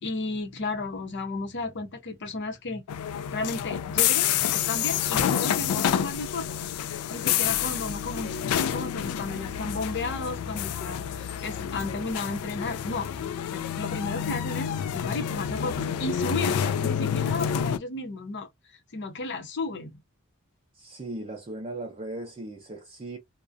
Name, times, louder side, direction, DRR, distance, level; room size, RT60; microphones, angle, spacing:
voice 1, 0.0-2.8 3.3-13.1 13.5-18.5 18.9-20.0, left 3 dB, 55° left, 0.7 m, -34 dB
sound 1, 2.9-17.8, left 9 dB, 85° left, 0.3 m, -28 dB
voice 2, 20.7-23.2, right 2 dB, 30° right, 0.5 m, -37 dB
2.4 x 2.1 x 2.4 m
head